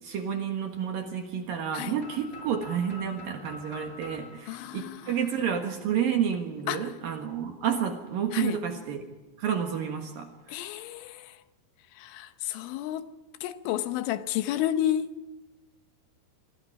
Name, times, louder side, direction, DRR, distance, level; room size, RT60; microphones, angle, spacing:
voice 1, 0.0-9.0 9.4-10.6, right 8 dB, 60° right, 2.7 m, -30 dB
sound 1, 2.0-5.8, left 3 dB, 15° left, 6.3 m, -46 dB
voice 2, 4.5-5.0 6.7-6.8 8.3-8.6 10.5-11.3 12.0-13.1 13.4-15.3, left 12 dB, 80° left, 3.3 m, -31 dB
27.5 x 23.0 x 4.8 m
omnidirectional pair, 5.7 m